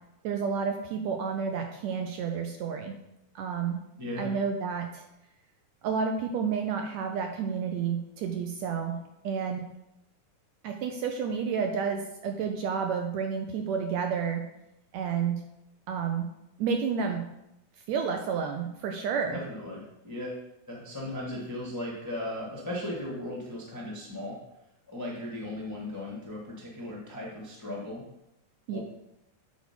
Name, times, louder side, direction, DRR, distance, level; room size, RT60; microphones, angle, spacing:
voice 1, 0.2-2.9 3.3-3.8 4.2-5.0 5.8-9.0 9.2-9.7 10.6-14.5 14.9-15.4 15.9-16.3 16.6-17.2 17.9-19.4 28.7-28.8, right 6 dB, 80° right, 4 dB, 1.6 m, -30 dB
voice 2, 4.0-4.3 19.3-20.4 20.7-24.4 24.9-28.0 28.7-28.8, left 1 dB, 30° left, -4 dB, 0.3 m, -37 dB
8.8 x 4.3 x 5.8 m, 0.85 s
omnidirectional pair, 3.8 m